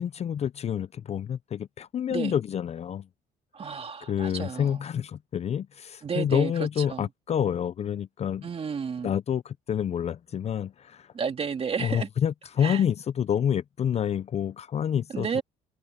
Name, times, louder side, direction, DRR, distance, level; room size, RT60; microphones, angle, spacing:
voice 1, 0.0-3.1 3.6-3.8 4.1-8.4 9.0-11.1 11.8-15.4, left 9 dB, 40° left, 0.5 m, -28 dB
voice 2, 3.5-4.8 6.0-7.1 8.4-9.2 11.1-12.1 12.6-12.8 15.1-15.4, right 6 dB, 35° right, 2.4 m, -32 dB
cardioid pair, 110°, 17 cm